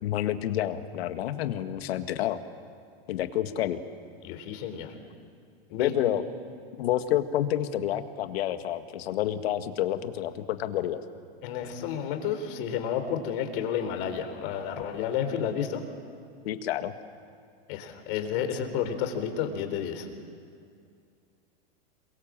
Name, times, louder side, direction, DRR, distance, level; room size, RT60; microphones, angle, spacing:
voice 1, 0.0-2.4 3.1-3.8 5.8-6.2 6.8-11.0 16.5-16.9, left 12 dB, 70° left, 9 dB, 1.9 m, -29 dB
voice 2, 4.2-4.9 5.7-5.9 11.4-15.8 17.7-20.1, left 8 dB, 55° left, 7 dB, 3.8 m, -31 dB
27.5 x 23.5 x 7.5 m, 2.4 s
supercardioid pair, 135°, 31 cm